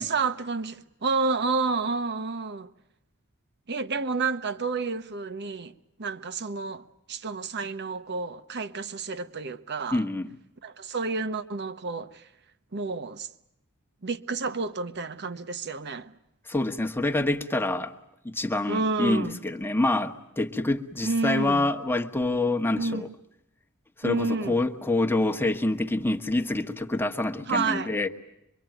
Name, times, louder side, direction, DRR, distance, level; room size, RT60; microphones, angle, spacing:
voice 1, 0.0-2.7 3.7-5.7 6.0-10.0 10.6-12.3 12.7-13.3 14.0-16.1 18.7-19.4 21.0-21.7 22.8-23.1 24.0-24.6 27.5-27.9, right 4 dB, 50° right, 1.0 m, -30 dB
voice 2, 9.9-10.3 16.5-17.9 18.2-23.1 24.0-28.1, left 2 dB, 10° left, 1.2 m, -26 dB
24.5 x 24.0 x 9.1 m
head